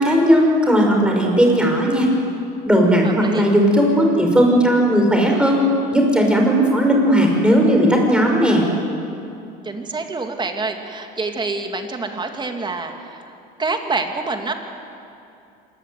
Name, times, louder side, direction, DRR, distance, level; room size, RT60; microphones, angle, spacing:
voice 1, 0.0-2.1 2.7-5.6 5.9-8.7, equal, 5° right, 0 dB, 6.7 m, -16 dB
voice 2, 3.0-3.5 9.6-13.3 13.6-14.5, right 3 dB, 20° right, 4 dB, 3.0 m, -26 dB
26.5 x 21.0 x 9.5 m, 2.7 s
cardioid pair, 115°, 21 cm